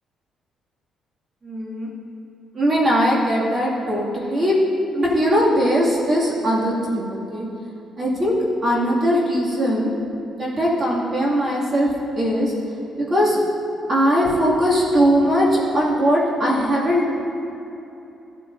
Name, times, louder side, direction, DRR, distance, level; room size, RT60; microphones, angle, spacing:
voice 1, 1.4-1.9 2.5-4.6 4.9-7.5 8.0-8.3 8.6-9.9 10.3-11.9 12.2-12.5 13.0-13.4 13.9-17.1, equal, 35° right, -6 dB, 2.4 m, -20 dB
15.0 x 8.4 x 2.7 m, 2.9 s
cardioid pair, 125°, 0 cm